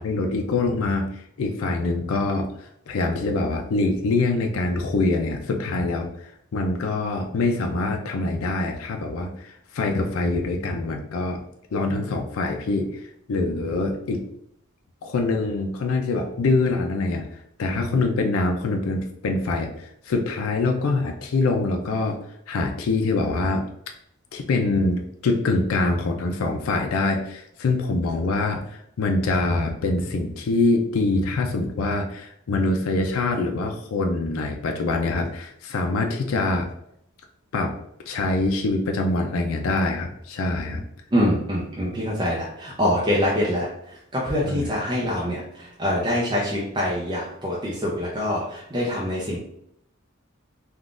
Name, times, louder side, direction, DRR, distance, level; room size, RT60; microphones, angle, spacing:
voice 1, 0.0-11.4 11.7-14.3 15.0-17.3 17.6-22.2 22.5-23.6 24.3-36.7 37.5-37.7 38.1-40.8 44.4-44.7, left 3 dB, 85° left, 3 dB, 0.4 m, -24 dB
voice 2, 41.1-49.4, equal, 20° right, -5 dB, 0.5 m, -25 dB
3.6 x 2.3 x 2.4 m, 0.74 s
head